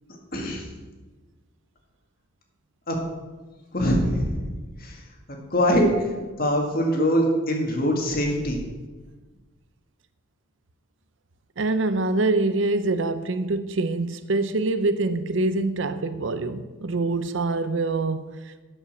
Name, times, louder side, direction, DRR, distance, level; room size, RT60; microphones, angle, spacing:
voice 1, 0.3-0.7 2.9-3.0 3.7-4.5 4.8-5.0 5.5-6.1 6.4-8.6, equal, 45° left, 1.9 m, -23 dB
voice 2, 11.6-18.6, right 2 dB, 65° right, 0.6 m, -25 dB
12.0 x 5.6 x 6.1 m
head